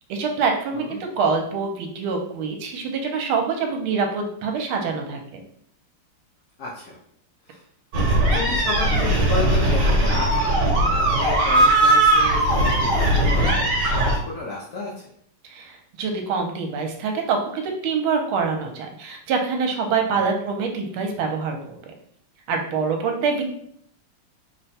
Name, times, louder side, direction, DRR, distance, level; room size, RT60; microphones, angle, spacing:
voice 1, 0.1-5.4 15.4-21.6 22.5-23.4, right 5 dB, 75° right, 3 dB, 1.5 m, -25 dB
voice 2, 6.6-7.0 7.5-7.6 8.3-10.4 11.0-15.1 20.1-20.4, left 3 dB, 75° left, -4 dB, 0.9 m, -32 dB
sound 1, 7.9-14.1, right 1 dB, 60° right, 1.3 m, -19 dB
3.6 x 2.2 x 4.1 m, 0.68 s
omnidirectional pair, 2.4 m